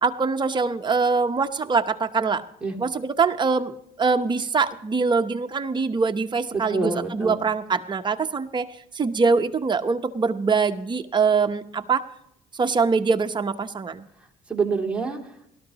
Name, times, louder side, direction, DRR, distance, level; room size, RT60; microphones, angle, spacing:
voice 1, 0.0-2.4 2.8-8.7 8.9-12.0 12.6-14.0, right 4 dB, 25° right, 7 dB, 0.9 m, -23 dB
voice 2, 6.5-7.4 14.2-15.5, right 4 dB, 5° right, -1 dB, 2.6 m, -27 dB
18.5 x 13.0 x 3.0 m, 0.75 s
cardioid pair, 110°, 17 cm